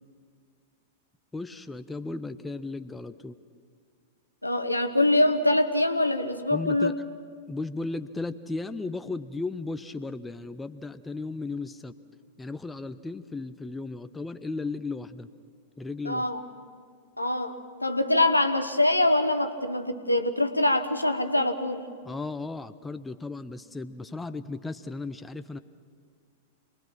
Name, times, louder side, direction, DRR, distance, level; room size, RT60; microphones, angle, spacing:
voice 1, 1.3-3.4 6.5-6.9 7.5-11.9 12.4-15.3 15.8-16.3 22.1-25.6, left 3 dB, 10° left, 10 dB, 0.6 m, -35 dB
voice 2, 4.4-6.9 16.0-16.4 17.2-21.8, left 1 dB, 85° left, 9 dB, 1.1 m, -24 dB
27.0 x 19.5 x 6.0 m, 2.1 s
figure-of-eight pair, 95°, 0 cm